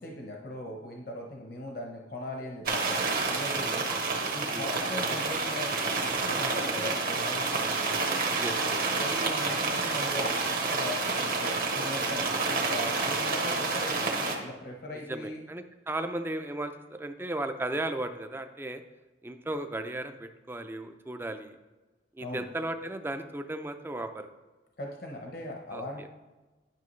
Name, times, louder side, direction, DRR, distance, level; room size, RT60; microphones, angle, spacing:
voice 1, 0.0-3.9 4.3-5.7 6.0-7.9 9.0-15.4 22.2-22.5 24.8-26.1, left 1 dB, 60° left, 0 dB, 0.9 m, -39 dB
sound 1, 2.7-14.4, right 3 dB, 55° right, 1.2 m, -29 dB
voice 2, 3.8-4.7 8.4-8.8 15.1-18.8 19.2-21.6 22.2-24.3 25.7-26.1, right 1 dB, 15° right, 8 dB, 0.4 m, -36 dB
10.5 x 5.8 x 3.2 m, 1.2 s
head